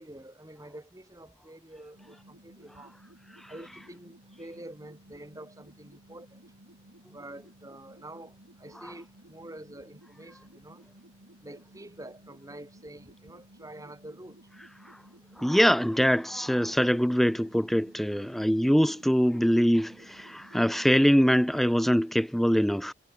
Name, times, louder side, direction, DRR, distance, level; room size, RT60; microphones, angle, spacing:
voice 1, 0.0-2.9 3.5-6.4 7.1-8.3 8.6-10.8 11.4-14.4, right 1 dB, 15° right, 2.1 m, -47 dB
sound 1, 1.9-21.9, right 1 dB, 75° right, 3.8 m, -56 dB
voice 2, 15.4-22.9, equal, ahead, 0.5 m, -23 dB
head